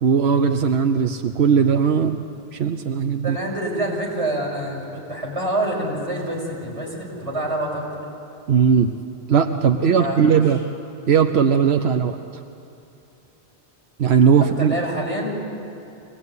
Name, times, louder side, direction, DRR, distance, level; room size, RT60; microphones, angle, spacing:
voice 1, 0.0-2.2 2.5-3.4 8.5-9.0 9.3-10.7 11.1-12.2 14.0-14.8, right 7 dB, 85° right, 7 dB, 1.1 m, -18 dB
voice 2, 3.2-7.8 9.9-10.4 14.4-15.4, right 1 dB, 30° right, -3 dB, 6.6 m, -27 dB
24.5 x 18.5 x 9.6 m, 2.9 s
omnidirectional pair, 1.1 m